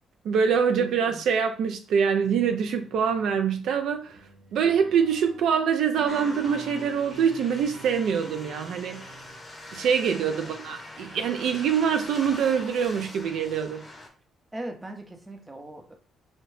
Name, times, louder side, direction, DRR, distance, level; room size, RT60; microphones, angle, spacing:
voice 1, 0.2-4.2 4.5-9.1 9.7-13.8, right 7 dB, 75° right, 0.3 m, -24 dB
voice 2, 0.8-1.2 10.2-10.6 14.5-15.9, right 1 dB, 15° right, 0.6 m, -40 dB
sound 1, 2.2-9.4, right 3 dB, 60° right, 0.9 m, -46 dB
sound 2, 6.1-14.1, left 2 dB, 25° left, 0.7 m, -43 dB
2.6 x 2.0 x 3.1 m
cardioid pair, 90°, 0 cm